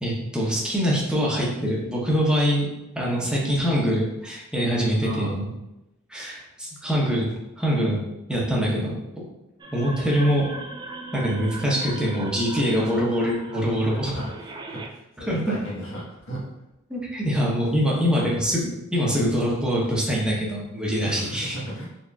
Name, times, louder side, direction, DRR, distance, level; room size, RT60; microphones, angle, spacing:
voice 1, 0.0-2.7 3.0-5.5 6.1-7.3 7.6-8.9 9.7-10.5 11.1-14.1 15.3-15.6 16.9-21.5, equal, 5° right, -5 dB, 0.9 m, -24 dB
voice 2, 5.0-5.4 13.9-16.5 21.0-21.9, right 1 dB, 70° left, -5 dB, 1.3 m, -35 dB
sound 1, 9.6-14.9, right 2 dB, 20° right, 0.3 m, -39 dB
4.0 x 3.6 x 2.3 m, 0.90 s
head